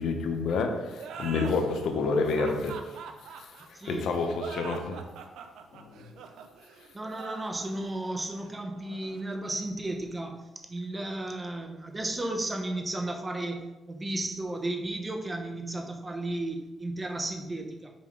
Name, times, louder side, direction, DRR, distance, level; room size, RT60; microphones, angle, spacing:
voice 1, 0.0-5.1 5.7-6.1, left 4 dB, 65° left, 0.9 m, -30 dB
sound 1, 1.0-10.2, right 6 dB, 80° right, 0.7 m, -44 dB
voice 2, 3.7-4.0 6.9-17.9, right 2 dB, 15° right, 0.8 m, -34 dB
6.3 x 3.7 x 5.1 m
cardioid pair, 155°, 0 cm